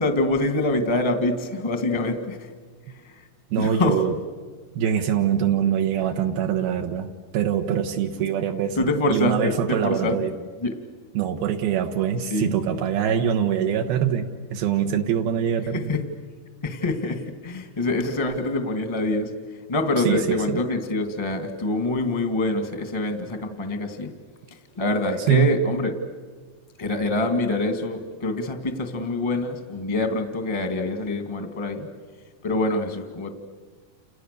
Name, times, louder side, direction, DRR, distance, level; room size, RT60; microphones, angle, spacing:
voice 1, 0.0-2.5 2.9-3.1 3.5-4.1 8.7-10.2 10.6-10.8 12.3-12.5 15.7-16.1 16.6-19.3 19.7-24.1 24.7-25.9 26.8-31.9 32.4-33.3, left 2 dB, 15° left, 7 dB, 1.0 m, -25 dB
voice 2, 3.5-4.1 4.8-8.8 9.1-10.3 11.1-15.9 20.0-20.6 25.3-25.5, right 9 dB, 80° right, 4 dB, 3.0 m, -23 dB
30.0 x 29.0 x 6.8 m, 1.5 s
omnidirectional pair, 4.4 m